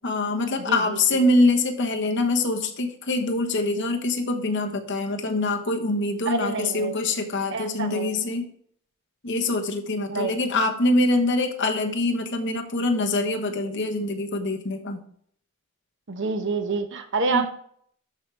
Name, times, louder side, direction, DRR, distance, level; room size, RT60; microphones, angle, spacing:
voice 1, 0.0-8.5 9.2-15.0 17.3-17.5, left 2 dB, 55° left, 4 dB, 1.2 m, -24 dB
voice 2, 0.6-1.0 6.3-7.0 7.5-8.1 10.1-10.4 16.1-17.5, right 4 dB, 55° right, 7 dB, 1.0 m, -27 dB
13.0 x 4.8 x 3.4 m, 0.62 s
head